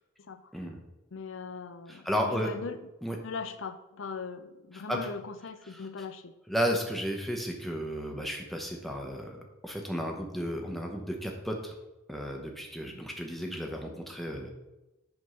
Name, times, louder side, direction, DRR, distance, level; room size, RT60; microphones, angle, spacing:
voice 1, 1.1-2.8 3.2-6.3, left 5 dB, 65° left, 12 dB, 0.5 m, -40 dB
voice 2, 1.9-2.5 3.0-3.2 4.7-5.0 5.7-5.8 6.5-11.7 12.1-14.5, equal, ahead, 1 dB, 0.9 m, -33 dB
7.9 x 3.6 x 5.6 m, 1.0 s
head